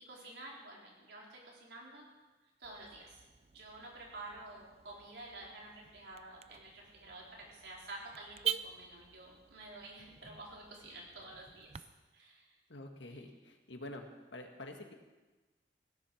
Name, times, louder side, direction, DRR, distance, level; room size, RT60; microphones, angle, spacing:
voice 1, 0.1-2.0 2.6-3.2 3.5-11.8 12.1-12.5, right 2 dB, 70° right, -3 dB, 4.4 m, -50 dB
Car / Alarm, 2.6-11.8, right 8 dB, 35° right, 0.4 m, -46 dB
voice 2, 12.7-14.0 14.3-14.9, left 1 dB, 85° left, 4 dB, 1.9 m, -47 dB
16.5 x 10.5 x 6.4 m, 1.2 s
head